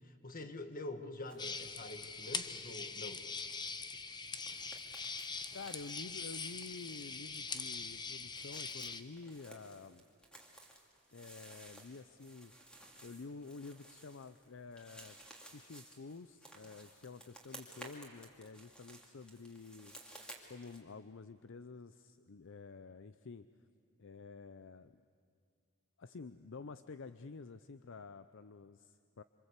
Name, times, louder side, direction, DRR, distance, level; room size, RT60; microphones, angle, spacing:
voice 1, 0.0-3.2, left 2 dB, 40° left, 8 dB, 1.6 m, -46 dB
sound 1, 1.2-1.6 1.9-20.8, right 1 dB, 5° left, 2.8 m, -57 dB
sound 2, 1.4-9.0, left 5 dB, 20° left, 0.8 m, -43 dB
voice 2, 5.5-10.0 11.1-12.5 13.0-15.2 15.5-20.0 20.5-23.5 24.0-25.0 26.0-29.2, left 4 dB, 60° left, 12 dB, 0.6 m, -50 dB
26.5 x 26.0 x 8.3 m, 2.2 s
head